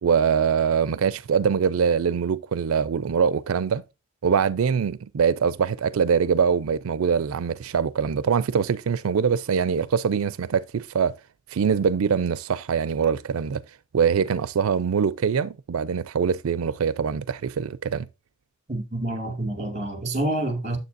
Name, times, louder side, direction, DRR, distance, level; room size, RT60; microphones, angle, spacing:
voice 1, 0.0-3.8 4.2-11.1 11.5-13.6 13.9-18.1, right 6 dB, 85° right, 0.4 m, -23 dB
voice 2, 18.7-20.8, right 1 dB, 35° right, 2.4 m, -28 dB
9.1 x 7.5 x 2.6 m
head